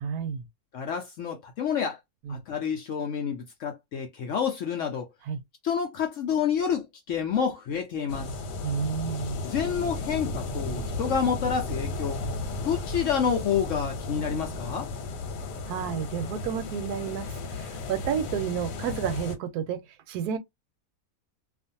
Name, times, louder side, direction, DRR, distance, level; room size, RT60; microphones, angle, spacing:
voice 1, 0.0-0.5 2.3-2.4 5.3-5.4 8.6-9.4 15.7-19.8 20.1-20.4, right 7 dB, 75° right, 1.1 m, -31 dB
voice 2, 0.7-2.0 2.3-5.1 5.6-8.3 9.4-12.2 12.6-14.9, left 7 dB, 70° left, 0.7 m, -28 dB
sound 1, 8.1-19.4, left 3 dB, 85° left, 1.3 m, -34 dB
2.5 x 2.4 x 2.6 m
omnidirectional pair, 1.8 m